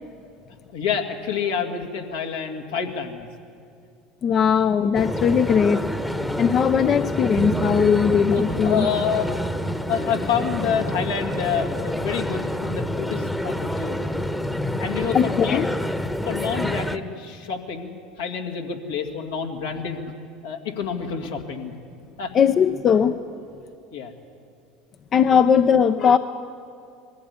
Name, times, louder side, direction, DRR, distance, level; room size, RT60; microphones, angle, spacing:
voice 1, 0.7-3.3 4.4-4.5 6.7-6.9 8.3-9.3 9.9-14.0 14.8-15.6 16.3-20.0 20.4-21.8 22.2-22.3 23.9-24.1 25.3-25.4, left 7 dB, 80° left, 1 dB, 2.3 m, -28 dB
voice 2, 4.2-5.9 6.4-8.9 15.1-15.7 22.3-23.2 25.1-26.2, left 7 dB, 40° left, 10 dB, 0.7 m, -19 dB
sound 1, 4.9-17.0, left 1 dB, 5° left, 1.1 m, -27 dB
Bass guitar, 7.4-13.6, right 12 dB, 55° right, 0.6 m, -36 dB
21.5 x 15.0 x 9.8 m, 2.5 s
hypercardioid pair, 80°, 0 cm